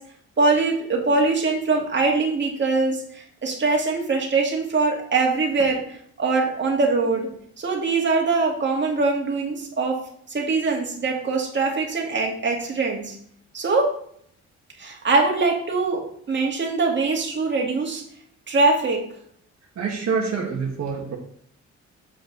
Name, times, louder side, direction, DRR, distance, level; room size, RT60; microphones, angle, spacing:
voice 1, 0.4-7.3 7.6-10.0 10.3-13.1 13.5-13.9 14.8-18.0 18.5-19.0, right 3 dB, 40° right, 0 dB, 2.1 m, -22 dB
voice 2, 19.7-21.2, right 5 dB, 60° right, -2 dB, 1.6 m, -26 dB
7.3 x 5.3 x 4.0 m, 0.65 s
cardioid pair, 90°, 30 cm